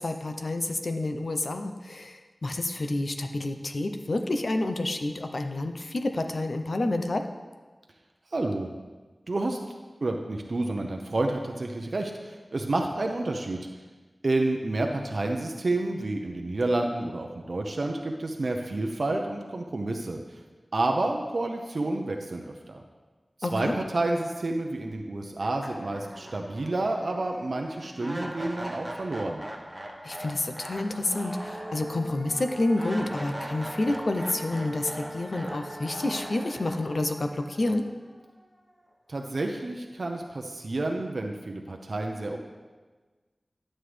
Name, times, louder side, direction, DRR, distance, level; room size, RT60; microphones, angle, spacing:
voice 1, 0.0-7.2 23.4-23.7 30.0-37.9, left 2 dB, 65° left, 6 dB, 0.7 m, -29 dB
voice 2, 8.3-8.7 9.3-9.6 10.0-13.6 14.2-20.4 20.7-22.8 23.4-29.4 39.1-42.4, right 2 dB, 65° right, 2 dB, 0.7 m, -29 dB
sound 1, 24.9-25.0 25.4-38.4, right 1 dB, 20° right, 1.1 m, -40 dB
11.0 x 7.5 x 3.3 m, 1.3 s
wide cardioid pair, 70°, 0 cm